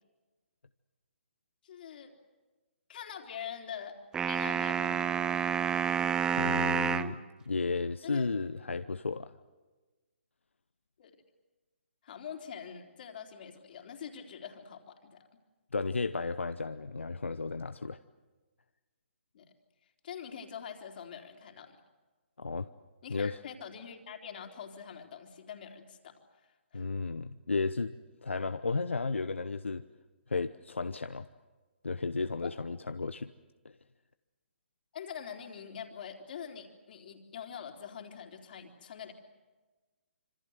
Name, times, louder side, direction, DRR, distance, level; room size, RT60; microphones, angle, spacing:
voice 1, 1.6-2.1 2.9-4.0 4.2-5.1 8.0-8.3 11.0-11.1 12.0-15.2 19.3-19.5 20.0-21.8 23.0-26.1 26.7-26.9 32.4-32.6 34.9-39.1, left 8 dB, 50° left, 3 dB, 3.7 m, -44 dB
sound 1, 4.1-7.2, right 7 dB, 10° right, 0.7 m, -29 dB
voice 2, 6.4-9.3 15.7-18.0 22.4-22.7 23.1-23.4 26.7-27.9 28.2-29.8 30.3-31.3 31.8-33.3, left 4 dB, 85° left, 11 dB, 0.8 m, -33 dB
26.5 x 25.0 x 8.0 m, 1.3 s
figure-of-eight pair, 135°, 6 cm